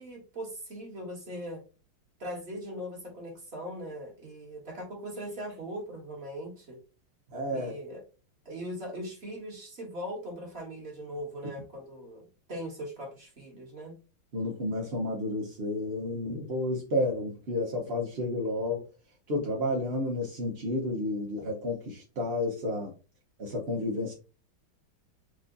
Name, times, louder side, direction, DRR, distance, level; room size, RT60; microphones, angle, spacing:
voice 1, 0.0-1.6 2.2-6.8 7.5-8.0 8.4-14.0, equal, 30° right, -1 dB, 1.7 m, -40 dB
voice 2, 7.3-7.7 14.3-18.8 19.3-22.9 23.4-24.1, left 1 dB, 45° right, -2 dB, 0.8 m, -31 dB
4.8 x 2.7 x 3.9 m, 0.33 s
omnidirectional pair, 2.3 m